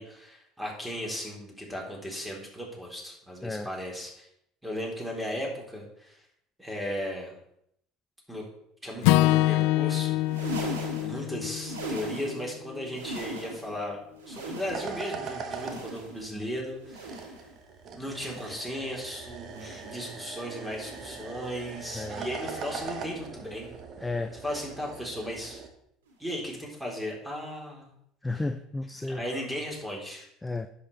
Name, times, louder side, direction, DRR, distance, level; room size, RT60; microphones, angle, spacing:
voice 1, 0.0-4.3 4.6-6.2 6.6-7.3 8.3-8.4 8.8-10.2 10.4-10.7 10.9-14.0 14.3-17.3 17.9-23.7 24.4-25.6 26.2-27.9 28.3-28.4 29.1-30.3, equal, 5° right, -1 dB, 3.8 m, -36 dB
Acoustic guitar / Strum, 9.0-13.3, left 17 dB, 65° left, 0.3 m, -26 dB
sound 1, 10.1-12.6 12.8-13.8 14.1-15.1 15.5-16.4 16.8-17.6 18.1-18.8 19.4-20.0 20.7-21.3 22.1-22.5 23.4-23.7 24.7-24.9 26.1-26.2, right 2 dB, 80° right, 2.2 m, -40 dB
sound 2, 14.5-25.7, right 5 dB, 50° right, 1.4 m, -41 dB
voice 2, 21.9-22.3 24.0-24.3 28.2-29.2 30.4-30.7, left 2 dB, 15° left, 9 dB, 0.5 m, -32 dB
10.0 x 7.1 x 4.2 m, 0.75 s
hypercardioid pair, 65°, 0 cm